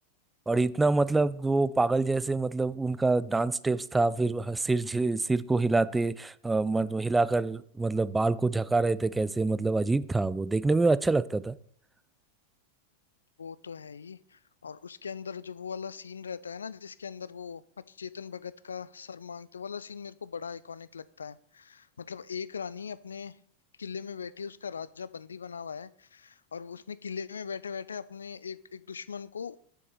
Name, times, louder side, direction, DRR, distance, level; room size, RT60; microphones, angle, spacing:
voice 1, 0.5-11.6, right 3 dB, 10° right, 0.3 m, -26 dB
voice 2, 13.4-17.6 17.9-23.4 23.8-29.6, left 6 dB, 70° left, 0.3 m, -40 dB
7.1 x 6.9 x 4.7 m
figure-of-eight pair, 90°, 0 cm